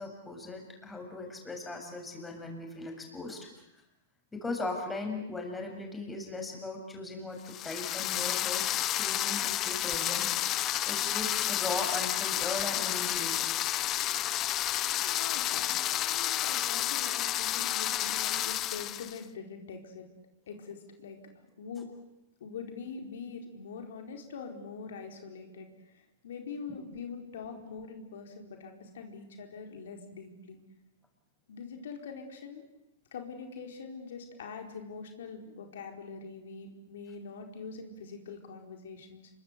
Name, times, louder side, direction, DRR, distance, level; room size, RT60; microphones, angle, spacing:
voice 1, 0.0-3.5 4.3-13.4 15.5-15.6, left 2 dB, 10° left, 2 dB, 7.4 m, -38 dB
sound 1, 7.5-19.2, left 13 dB, 30° left, 1.1 m, -31 dB
voice 2, 15.0-20.1 20.5-22.0 22.4-30.6 31.5-32.6 33.1-39.3, left 5 dB, 75° left, 3 dB, 4.6 m, -44 dB
28.0 x 24.0 x 8.3 m, 0.89 s
hypercardioid pair, 130°, 0 cm